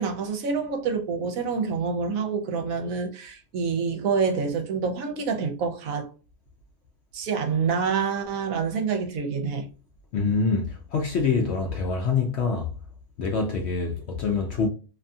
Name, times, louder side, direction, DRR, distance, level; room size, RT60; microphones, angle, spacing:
voice 1, 0.0-6.1 7.1-9.7, right 5 dB, 70° right, 1.0 m, -27 dB
voice 2, 10.1-12.7 13.2-14.7, left 4 dB, 65° left, 0.7 m, -25 dB
2.7 x 2.6 x 2.2 m
omnidirectional pair, 1.5 m